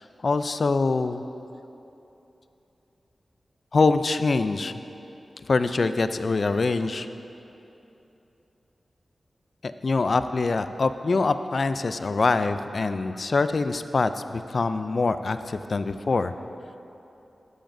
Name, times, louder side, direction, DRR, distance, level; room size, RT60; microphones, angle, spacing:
voice 1, 0.2-1.2 3.7-4.7 5.5-7.1 9.6-16.3, left 3 dB, 55° left, 11 dB, 0.3 m, -24 dB
13.0 x 8.8 x 2.6 m, 2.9 s
wide cardioid pair, 115°, 0 cm